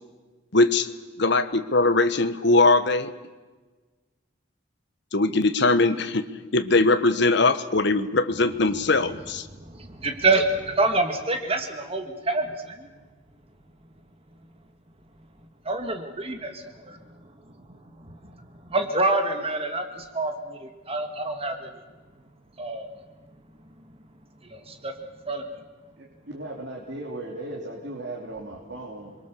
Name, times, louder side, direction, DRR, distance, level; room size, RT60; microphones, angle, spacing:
voice 1, 0.5-0.9 1.2-3.1 5.1-6.3 6.5-9.5, left 3 dB, 60° left, 10 dB, 1.2 m, -21 dB
voice 2, 9.6-12.9 15.7-17.0 18.7-21.7 22.6-22.9 24.5-24.9 25.3-25.5, right 2 dB, 30° right, 6 dB, 1.9 m, -27 dB
voice 3, 26.0-29.2, right 2 dB, 60° right, -1 dB, 3.1 m, -37 dB
28.5 x 22.5 x 7.0 m, 1.3 s
head